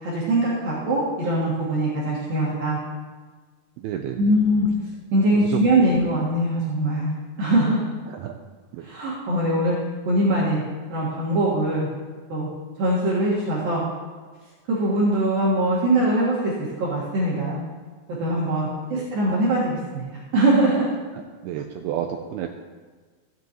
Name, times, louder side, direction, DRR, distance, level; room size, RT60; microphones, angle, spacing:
voice 1, 0.0-2.8 4.2-4.7 5.1-7.8 8.8-9.8 10.1-10.6 10.9-11.9 12.3-12.5 12.8-13.9 14.7-16.5 16.8-17.6 18.1-20.1 20.3-20.9, right 1 dB, 60° right, -7 dB, 3.0 m, -22 dB
voice 2, 3.8-4.2 5.4-5.6 5.9-6.1 8.1-8.4 8.7-8.9 18.9-19.1 21.4-22.6, right 10 dB, 90° right, 4 dB, 2.3 m, -31 dB
15.5 x 9.4 x 3.0 m, 1.4 s
omnidirectional pair, 5.1 m